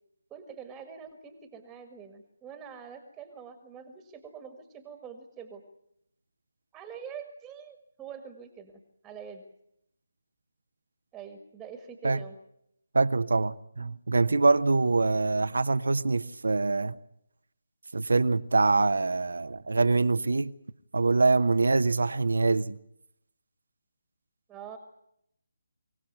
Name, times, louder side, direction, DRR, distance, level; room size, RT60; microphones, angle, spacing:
voice 1, 0.3-5.6 6.7-9.4 11.1-12.4 24.5-24.8, right 7 dB, 10° right, 1.7 m, -45 dB
voice 2, 12.9-17.0 17.9-20.5 20.9-22.8, right 3 dB, 70° right, 0.9 m, -24 dB
24.5 x 16.5 x 9.4 m
figure-of-eight pair, 150°, 0 cm